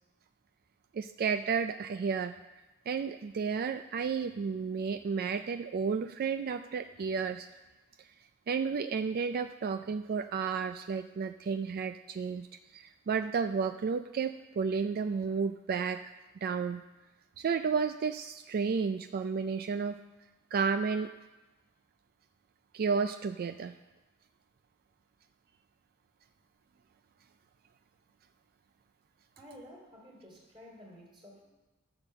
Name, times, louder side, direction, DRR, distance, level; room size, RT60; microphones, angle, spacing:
voice 1, 0.9-2.3 2.9-7.5 8.5-12.5 12.7-16.0 16.4-16.8 17.4-20.0 20.5-21.1 22.7-23.7, right 5 dB, 45° right, 9 dB, 0.3 m, -32 dB
voice 2, 29.4-31.5, equal, 25° right, -2 dB, 3.4 m, -52 dB
12.5 x 6.3 x 6.7 m, 1.1 s
head